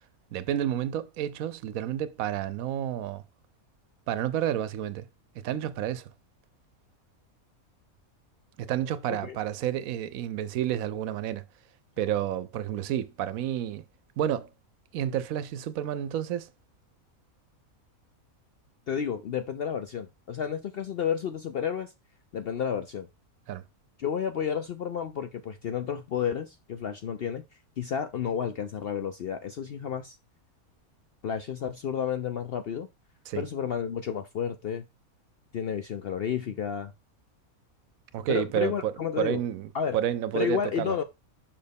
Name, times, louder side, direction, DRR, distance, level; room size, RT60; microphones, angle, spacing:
voice 1, 0.3-3.2 4.1-5.1 5.4-6.1 8.6-11.4 12.0-13.8 14.2-14.5 14.9-16.5 23.5-23.6 33.3-33.4 38.1-41.0, right 11 dB, 75° right, 1.0 m, -30 dB
voice 2, 18.9-21.9 22.3-23.1 24.0-27.4 27.8-30.2 31.2-32.9 33.3-34.8 35.5-36.9 38.3-39.4 39.7-40.0 40.3-41.0, left 8 dB, 65° left, 0.6 m, -31 dB
5.7 x 4.3 x 5.1 m
omnidirectional pair, 1.5 m